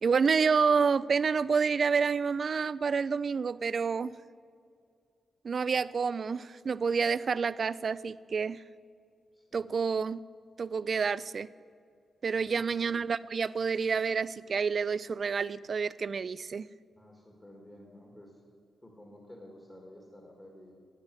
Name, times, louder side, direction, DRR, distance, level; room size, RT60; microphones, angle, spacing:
voice 1, 0.0-4.1 5.4-8.6 9.5-10.2 10.6-11.5 12.2-16.7, right 5 dB, 50° right, 18 dB, 0.3 m, -28 dB
voice 2, 9.3-9.8 12.3-12.7 17.0-18.4 18.8-20.7, left 1 dB, 20° left, 0 dB, 2.0 m, -52 dB
10.5 x 9.0 x 7.6 m, 2.4 s
cardioid pair, 95°, 0 cm